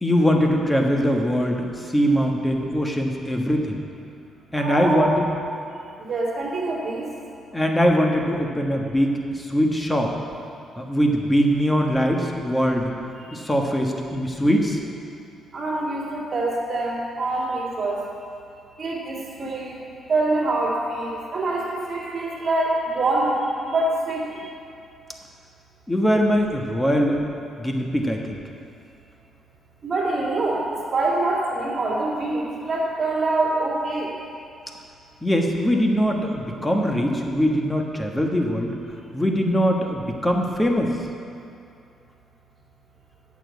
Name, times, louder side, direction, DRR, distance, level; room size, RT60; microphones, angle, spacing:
voice 1, 0.0-3.8 4.5-5.2 7.5-10.1 10.8-12.9 13.3-14.8 25.9-27.2 27.6-28.4 35.2-38.7 39.1-41.0, equal, 10° left, 1 dB, 1.4 m, -22 dB
voice 2, 4.6-5.2 6.0-7.1 15.5-18.0 18.8-19.7 20.1-23.3 23.7-24.3 29.8-34.1, right 2 dB, 50° right, -5 dB, 2.3 m, -25 dB
8.9 x 7.0 x 8.1 m, 2.6 s
cardioid pair, 90°, 0 cm